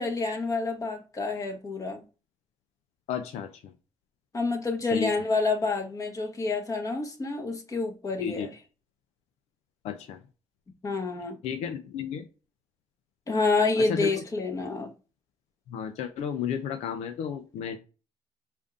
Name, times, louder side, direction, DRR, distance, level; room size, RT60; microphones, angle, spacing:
voice 1, 0.0-2.0 4.3-8.5 10.8-11.4 13.3-14.9, left 3 dB, 30° left, 1.2 m, -28 dB
voice 2, 3.1-3.7 4.9-5.1 8.2-8.5 9.8-10.2 11.4-12.2 13.8-14.1 15.7-17.8, left 8 dB, 70° left, 0.5 m, -33 dB
5.0 x 2.5 x 2.5 m
supercardioid pair, 80°, 11 cm